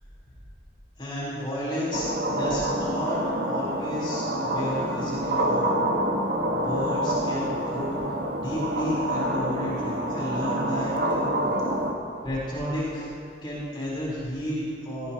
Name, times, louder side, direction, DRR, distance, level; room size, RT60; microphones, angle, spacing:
voice 1, 1.0-2.1 2.3-5.7 6.5-8.0 8.4-11.3 12.2-13.1 13.4-15.1, equal, 30° left, -8 dB, 3.9 m, -32 dB
sound 1, 1.9-11.9, right 1 dB, 70° right, 1.4 m, -27 dB
18.0 x 16.5 x 3.0 m, 2.4 s
head